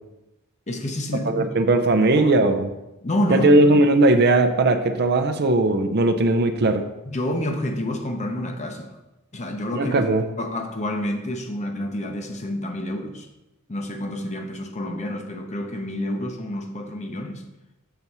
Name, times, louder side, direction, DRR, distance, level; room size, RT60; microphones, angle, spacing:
voice 1, 0.7-1.6 2.0-2.3 3.0-3.6 7.1-9.0 9.3-10.0 10.4-13.3 13.7-17.4, left 1 dB, 30° left, 0.8 m, -28 dB
voice 2, 1.3-2.7 3.3-6.8 9.7-10.2, right 2 dB, 50° right, 0.5 m, -18 dB
6.8 x 4.1 x 6.0 m
head